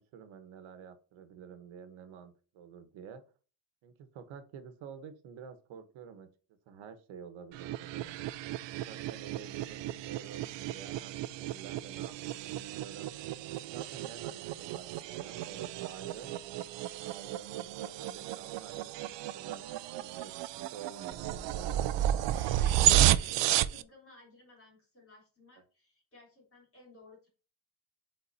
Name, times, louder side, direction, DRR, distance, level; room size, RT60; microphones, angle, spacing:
voice 1, 0.0-3.2 3.8-6.3 6.7-8.2 8.8-13.1 13.6-16.3 16.9-21.9, right 7 dB, 80° right, 10 dB, 1.2 m, -49 dB
sound 1, 7.5-23.8, right 13 dB, 65° right, 0.5 m, -32 dB
voice 2, 22.3-27.3, left 2 dB, 30° left, -2 dB, 3.4 m, -56 dB
8.3 x 4.1 x 2.7 m, 0.36 s
cardioid pair, 145°, 47 cm